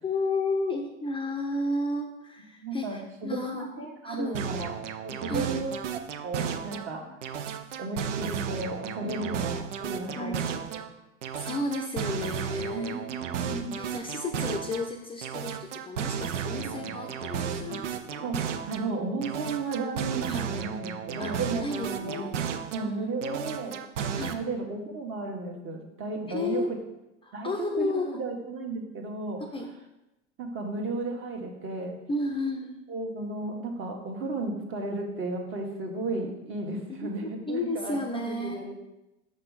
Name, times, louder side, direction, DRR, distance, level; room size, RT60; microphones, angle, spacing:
voice 1, 0.0-3.7 4.0-4.4 5.2-5.5 7.1-7.2 9.0-9.5 10.1-10.4 11.4-13.0 13.7-18.3 20.2-20.4 21.2-21.3 21.6-22.4 22.8-23.1 24.1-24.4 26.3-26.8 27.2-28.1 29.5-29.7 32.1-32.8 36.9-38.7, left 2 dB, 15° left, 3 dB, 0.6 m, -33 dB
voice 2, 2.6-4.8 5.0-5.8 6.2-7.4 7.8-10.4 10.7-10.9 12.7-13.8 16.6-16.9 17.7-17.8 18.2-22.3 22.7-26.6 27.3-29.4 30.4-31.9 32.9-38.7, right 3 dB, 35° right, 1 dB, 1.5 m, -34 dB
sound 1, 4.3-6.9 7.2-10.9 11.2-14.9 15.2-18.9 19.2-22.9 23.2-24.3, right 8 dB, 85° right, 0.6 m, -34 dB
6.3 x 5.4 x 4.0 m, 0.94 s
hypercardioid pair, 90°, 36 cm